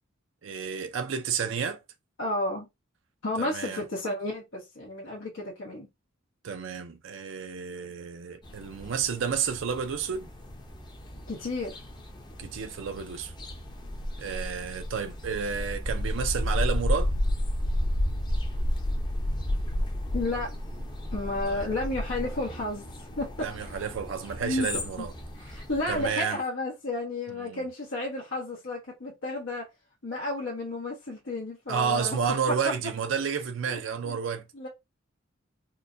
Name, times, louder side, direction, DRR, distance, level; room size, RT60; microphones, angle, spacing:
voice 1, 0.4-1.8 3.4-3.8 6.4-10.3 12.4-13.3 14.2-17.1 21.5-21.6 23.4-25.1 25.9-26.4 27.4-27.7 31.7-34.5, right 6 dB, 70° right, 0.4 m, -31 dB
voice 2, 2.2-2.7 3.2-5.9 11.3-11.8 20.1-20.6 21.1-23.8 24.4-24.7 25.0-25.1 25.4-29.7 30.0-32.2 32.5-32.6 33.7-34.2 34.5-34.7, left 2 dB, 80° left, 1.2 m, -32 dB
sound 1, 8.4-26.1, left 1 dB, 20° left, 0.7 m, -32 dB
4.4 x 2.1 x 2.6 m
head